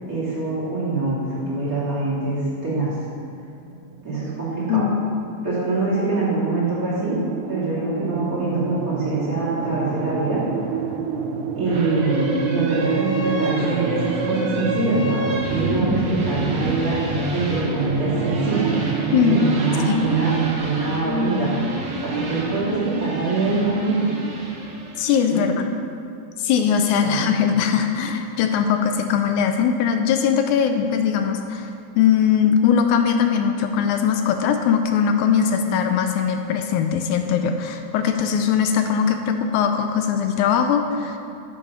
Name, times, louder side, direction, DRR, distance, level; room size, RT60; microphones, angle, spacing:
voice 1, 0.1-2.9 4.0-4.8 5.4-7.2 7.5-10.4 11.5-17.0 17.3-18.7 19.3-20.3 20.6-21.5 22.0-24.1 25.3-25.5 27.0-27.2, right 2 dB, 30° right, -10 dB, 2.7 m, -24 dB
sound 1, 3.6-20.6, right 6 dB, 80° right, 1.9 m, -28 dB
voice 2, 4.7-5.1 19.1-19.4 19.9-20.0 25.0-25.5 26.4-41.2, left 7 dB, 80° left, 6 dB, 2.0 m, -20 dB
sound 2, 11.6-25.3, right 1 dB, 55° right, 1.2 m, -29 dB
8.3 x 7.2 x 5.5 m, 2.5 s
omnidirectional pair, 3.5 m